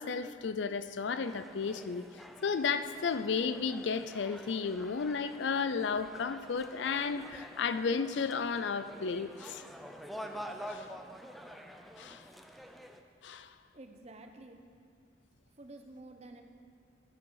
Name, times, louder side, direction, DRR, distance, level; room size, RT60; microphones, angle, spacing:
voice 1, 0.0-2.0 2.4-9.6 10.7-10.9 12.0-12.2 13.2-13.5, left 5 dB, 70° left, 12 dB, 0.5 m, -33 dB
sound 1, 1.2-13.0, equal, ahead, 0.5 m, -48 dB
voice 2, 13.7-14.6 15.5-16.4, right 2 dB, 35° right, 5 dB, 0.8 m, -50 dB
12.0 x 9.5 x 4.7 m, 2.3 s
head